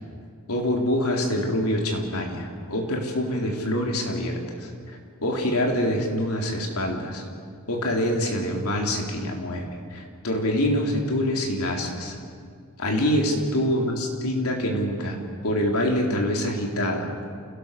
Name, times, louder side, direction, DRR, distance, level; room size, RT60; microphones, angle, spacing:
voice 1, 0.5-7.2 7.7-9.7 9.9-12.2 12.8-15.2 15.4-17.1, left 1 dB, 85° left, 1 dB, 3.7 m, -25 dB
29.0 x 17.5 x 6.9 m, 2.1 s
head